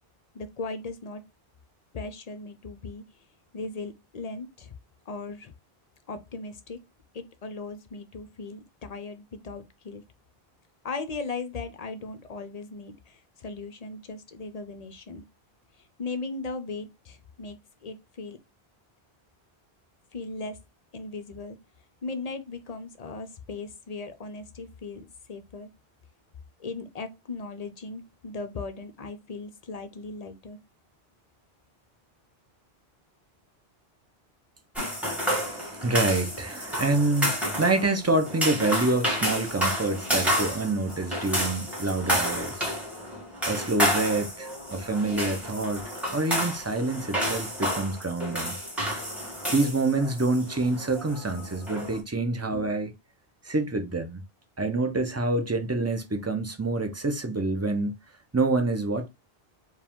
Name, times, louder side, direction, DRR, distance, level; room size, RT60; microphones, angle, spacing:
voice 1, 0.3-1.2 1.9-3.0 3.5-4.7 5.1-5.5 6.1-6.8 7.1-10.0 10.8-15.2 16.0-18.4 20.1-20.6 20.9-21.6 22.0-25.7 26.6-30.6, left 3 dB, 50° left, 0.5 m, -38 dB
sound 1, 34.8-52.0, equal, ahead, 1.6 m, -30 dB
voice 2, 35.4-42.7 43.5-48.6 49.5-52.9 53.4-54.2 54.6-57.9 58.3-59.1, right 2 dB, 20° right, 0.4 m, -27 dB
4.8 x 2.3 x 3.6 m
omnidirectional pair, 1.1 m